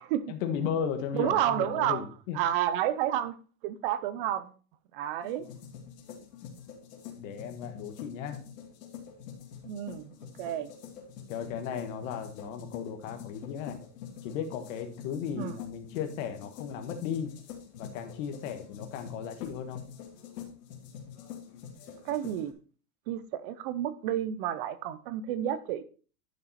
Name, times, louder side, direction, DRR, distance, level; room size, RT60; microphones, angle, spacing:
voice 1, 0.3-2.4 7.2-8.4 11.3-13.8 14.2-17.3 17.8-19.8, left 7 dB, 55° left, 1.7 m, -35 dB
voice 2, 1.1-2.0 2.3-3.4 3.6-4.5 4.9-5.5 9.6-10.7 15.4-15.5 22.0-22.5 23.1-25.8, right 11 dB, 35° right, 0.7 m, -30 dB
sound 1, 5.2-22.5, left 8 dB, 85° left, 2.7 m, -46 dB
11.0 x 5.7 x 4.2 m
supercardioid pair, 175°, 47 cm